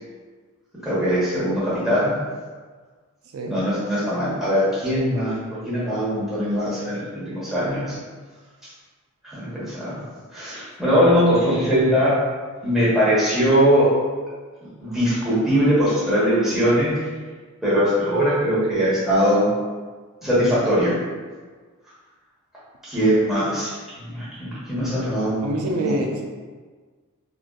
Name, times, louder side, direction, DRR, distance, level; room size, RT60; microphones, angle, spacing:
voice 1, 0.8-2.1 3.5-5.3 5.6-8.0 9.2-10.0 10.3-12.1 12.6-13.9 14.8-17.0 17.6-19.5 20.2-21.0 22.8-25.9, equal, ahead, -11 dB, 1.1 m, -21 dB
voice 2, 25.4-26.2, right 1 dB, 75° right, 1 dB, 0.4 m, -25 dB
3.6 x 2.5 x 2.3 m, 1.5 s
head